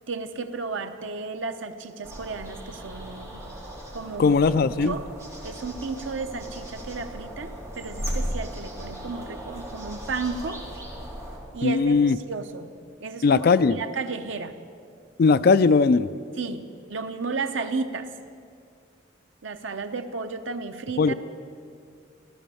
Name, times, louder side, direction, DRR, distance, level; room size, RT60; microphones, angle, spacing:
voice 1, 0.1-3.4 3.9-4.4 4.8-5.1 5.4-10.6 11.5-12.0 12.3-12.7 13.0-13.4 13.8-14.5 16.4-18.1 19.4-21.1, right 4 dB, 85° right, 8 dB, 0.9 m, -33 dB
sound 1, 2.0-11.4, equal, 15° right, 2.6 m, -37 dB
voice 2, 4.2-4.9 11.6-12.2 13.2-13.8 15.2-16.1 21.0-21.1, left 4 dB, 50° left, 15 dB, 0.4 m, -19 dB
15.0 x 12.5 x 7.0 m, 2.3 s
head